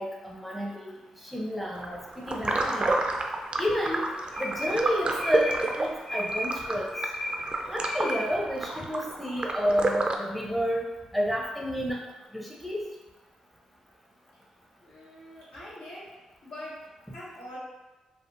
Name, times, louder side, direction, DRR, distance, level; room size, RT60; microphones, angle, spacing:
voice 1, 0.0-3.0 3.6-4.1 4.4-7.0 7.7-10.9 11.1-12.0 12.3-12.8, equal, ahead, -3 dB, 0.6 m, -30 dB
sound 1, 1.8-10.2, right 2 dB, 40° right, 0.4 m, -30 dB
sound 2, 2.4-3.1 3.5-8.4, left 1 dB, 40° left, 0.8 m, -35 dB
voice 2, 14.8-16.1 16.4-16.8 17.1-17.6, left 1 dB, 75° left, -9 dB, 1.2 m, -43 dB
3.3 x 2.0 x 2.5 m, 1.1 s
hypercardioid pair, 40°, 3 cm